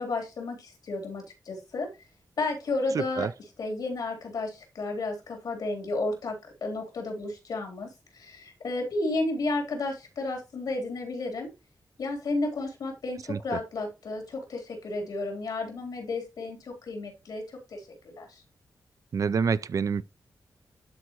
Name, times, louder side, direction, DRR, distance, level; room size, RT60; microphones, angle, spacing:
voice 1, 0.0-1.9 2.4-3.3 3.6-11.5 12.0-18.4, left 2 dB, 85° left, 3.5 m, -32 dB
voice 2, 2.9-3.3 13.3-13.4 19.1-20.0, right 6 dB, 60° right, 0.4 m, -27 dB
12.5 x 4.6 x 3.0 m
wide cardioid pair, 115°, 7 cm